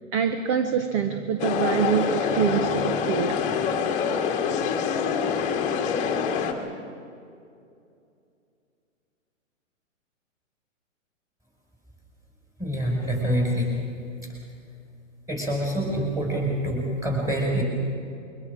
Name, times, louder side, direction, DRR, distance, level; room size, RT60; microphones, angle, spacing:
voice 1, 0.1-3.6, right 7 dB, 25° right, 8 dB, 0.8 m, -25 dB
sound 1, 1.4-6.5, left 6 dB, 20° left, 1.7 m, -25 dB
voice 2, 12.6-13.7 15.3-17.6, equal, 10° right, -2 dB, 5.5 m, -26 dB
28.0 x 23.5 x 4.9 m, 2.5 s
hypercardioid pair, 150°, 39 cm